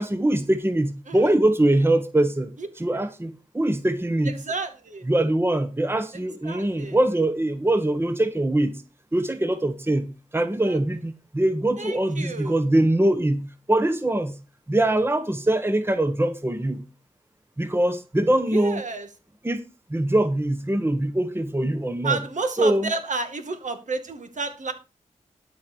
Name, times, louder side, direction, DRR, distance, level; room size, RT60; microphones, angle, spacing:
voice 1, 0.0-2.5 2.8-4.4 5.1-8.8 9.1-10.1 10.3-14.4 14.7-16.8 17.6-18.8 19.4-19.6 19.9-22.2 22.6-22.9, right 1 dB, 15° right, 10 dB, 1.2 m, -23 dB
voice 2, 4.3-5.0 6.1-7.0 10.6-10.8 11.8-12.6 18.5-19.1 22.0-24.7, right 3 dB, 65° right, 7 dB, 2.2 m, -31 dB
12.0 x 4.8 x 6.3 m, 0.31 s
cardioid pair, 50°, 13 cm